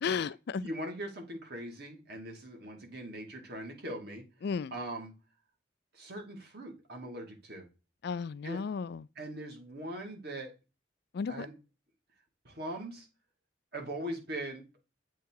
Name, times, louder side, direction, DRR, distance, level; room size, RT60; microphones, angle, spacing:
voice 1, 0.0-0.7 4.4-4.7 8.0-9.1 11.1-11.5, left 5 dB, 60° left, 0.4 m, -34 dB
voice 2, 0.5-4.2 4.7-5.2 5.9-7.7 8.4-8.6 9.2-10.6 11.3-11.5 12.4-13.1 13.7-14.8, right 1 dB, 60° right, 2.3 m, -41 dB
8.1 x 3.6 x 4.7 m
head